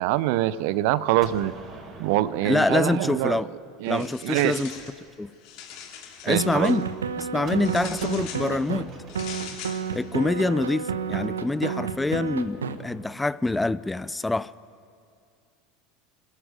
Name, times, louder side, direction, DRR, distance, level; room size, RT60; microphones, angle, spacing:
voice 1, 0.0-1.5 2.0-3.4 3.8-4.6 6.3-6.7, right 15 dB, 60° right, 17 dB, 0.7 m, -24 dB
Gunshot gunfire, 1.2-4.0 7.4-11.3, right 2 dB, 35° right, 4.4 m, -46 dB
voice 2, 2.4-3.5 3.9-4.7 5.2-5.3 6.2-6.8 7.2-8.9 9.9-14.5, left 2 dB, 10° left, 18 dB, 0.5 m, -25 dB
sound 1, 3.8-5.0 5.3-6.8 7.6-8.5 9.1-9.8, left 8 dB, 55° left, 2.6 m, -41 dB
sound 2, 6.4-8.8 9.2-12.8, right 6 dB, 80° right, 1.0 m, -30 dB
25.0 x 14.5 x 9.4 m, 2.3 s
figure-of-eight pair, 80°, 0 cm